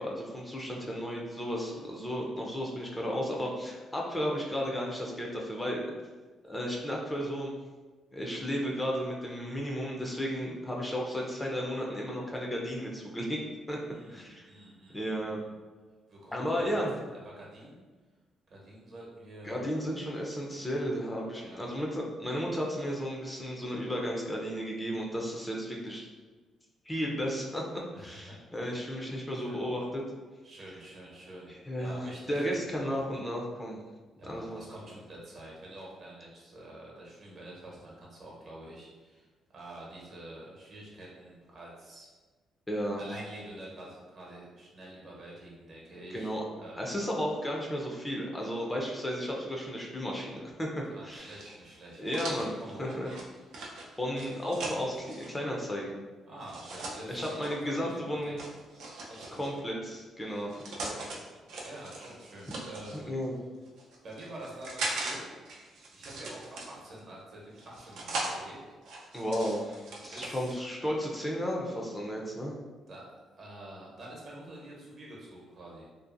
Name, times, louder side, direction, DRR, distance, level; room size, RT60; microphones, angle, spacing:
voice 1, 0.0-5.9 6.4-7.6 8.1-13.4 13.7-13.8 14.1-14.5 14.9-15.4 16.3-16.9 19.4-26.1 26.9-30.0 31.5-33.8 34.3-34.6 42.7-43.0 46.1-46.4 46.8-51.4 52.0-53.1 54.0-56.0 57.1-58.4 59.3-61.2 62.9-63.4 69.1-72.6, equal, 15° left, -2 dB, 0.4 m, -34 dB
voice 2, 1.5-1.8 13.8-15.5 16.1-17.1 17.3-17.9 18.5-19.6 21.4-21.7 27.9-28.4 29.3-29.6 30.4-31.5 31.8-33.0 34.2-42.1 43.0-46.3 46.6-46.8 50.9-52.0 52.6-53.0 56.3-58.5 59.1-59.4 61.6-63.1 64.0-65.3 65.9-68.6 70.1-70.5 72.9-73.1 73.4-75.9, right 1 dB, 55° right, -4 dB, 0.8 m, -47 dB
sound 1, 51.2-55.3 56.5-57.5 58.4-59.6 60.3-61.2 61.5-63.0 63.7-65.2 65.5-67.0 67.6-68.4 68.8-70.5, right 2 dB, 80° right, 0.5 m, -39 dB
2.6 x 2.4 x 2.4 m, 1.3 s
cardioid pair, 90°, 0 cm